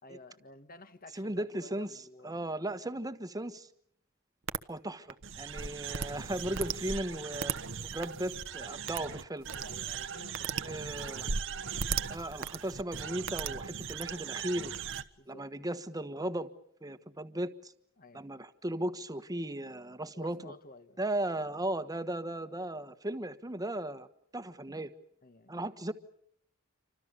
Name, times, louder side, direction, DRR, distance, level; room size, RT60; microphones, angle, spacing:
voice 1, 0.0-2.4 5.7-5.9 9.5-11.0 15.2-15.5 18.0-18.3 20.1-21.0 25.2-25.5, left 2 dB, 45° left, 1.9 m, -53 dB
voice 2, 1.1-2.0 2.2-3.7 4.7-7.5 7.8-9.5 10.6-11.3 12.1-14.7 15.3-16.5 16.8-17.7 18.1-20.5 21.0-24.1 24.3-24.9 25.5-25.9, right 1 dB, 20° right, 1.4 m, -36 dB
sound 1, 4.5-4.6 5.1-15.0, right 6 dB, 65° right, 1.2 m, -37 dB
28.5 x 25.0 x 6.9 m
head